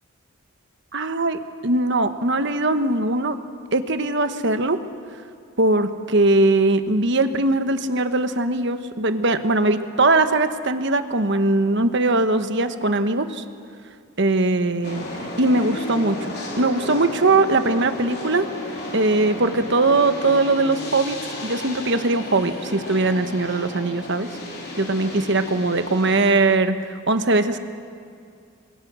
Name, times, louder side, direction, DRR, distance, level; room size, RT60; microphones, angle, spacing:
voice 1, 0.9-3.4 3.7-4.8 5.6-13.4 14.2-15.1 15.4-18.5 18.9-21.2 21.4-24.3 24.8-27.6, right 2 dB, 55° right, 9 dB, 1.2 m, -20 dB
sound 1, 14.8-26.3, left 1 dB, 50° left, 4.6 m, -33 dB
29.5 x 23.0 x 6.3 m, 2.3 s
head